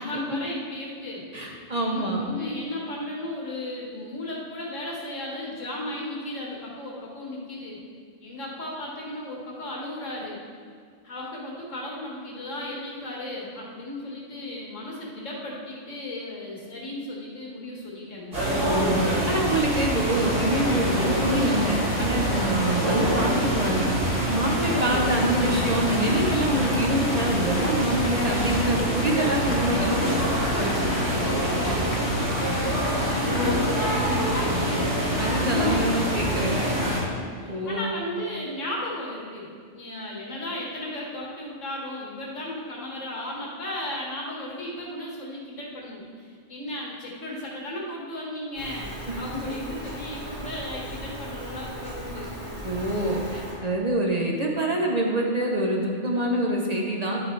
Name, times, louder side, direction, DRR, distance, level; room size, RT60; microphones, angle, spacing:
voice 1, 0.0-1.3 1.9-7.8 8.2-10.4 11.0-18.4 30.5-37.1 37.4-52.4, left 1 dB, 80° left, -3 dB, 2.1 m, -35 dB
voice 2, 1.3-2.3 18.6-19.0 19.3-23.9 24.3-30.0 33.4-33.5 34.8-36.6 37.5-37.9 49.1-49.2 52.6-57.2, right 1 dB, 35° right, -1 dB, 1.0 m, -26 dB
sound 1, 18.3-37.0, equal, 75° right, 3.3 m, -25 dB
sound 2, 19.6-34.5, left 2 dB, 60° left, 1.3 m, -40 dB
Rain, 48.6-53.5, right 1 dB, 55° right, 3.2 m, -37 dB
11.0 x 8.6 x 3.3 m, 2.1 s
omnidirectional pair, 1.3 m